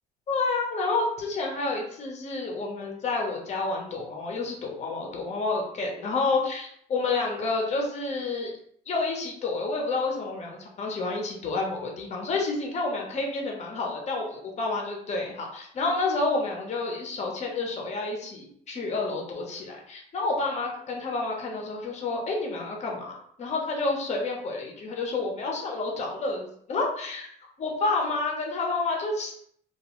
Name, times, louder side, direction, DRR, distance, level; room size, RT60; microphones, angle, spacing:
voice 1, 0.3-8.5 8.9-26.4 26.7-27.3 27.6-29.3, left 3 dB, 40° left, 0 dB, 0.8 m, -29 dB
2.4 x 2.2 x 2.9 m, 0.65 s
cardioid pair, 110°, 17 cm